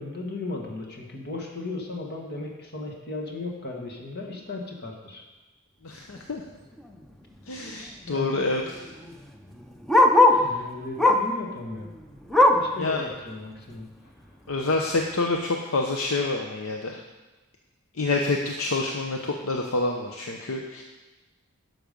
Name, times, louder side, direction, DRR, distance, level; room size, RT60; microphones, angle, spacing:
voice 1, 0.0-5.3 8.1-8.4 10.4-11.9 12.5-14.1, left 2 dB, 50° left, 1 dB, 1.8 m, -36 dB
voice 2, 5.8-6.4 7.5-8.6 10.3-10.6 12.8-13.0 14.5-17.0 17.9-20.8, left 3 dB, 70° left, 2 dB, 0.8 m, -27 dB
Bark, 6.8-7.0 7.4-7.5 7.7-10.5 11.0-11.4 11.8-12.8 13.2-13.3 13.7-13.8 14.5-14.6, left 2 dB, ahead, 0.6 m, -20 dB
12.0 x 6.3 x 5.3 m, 1.1 s
head